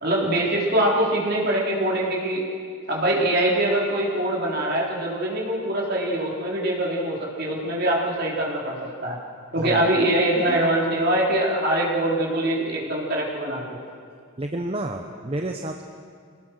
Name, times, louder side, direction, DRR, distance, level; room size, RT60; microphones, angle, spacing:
voice 1, 0.0-2.4 2.9-9.2 9.5-13.8, right 1 dB, 45° right, -3 dB, 4.1 m, -23 dB
voice 2, 9.6-9.9 10.5-10.6 14.4-15.8, right 1 dB, 25° right, 4 dB, 0.8 m, -30 dB
26.0 x 18.5 x 6.4 m, 2.2 s
head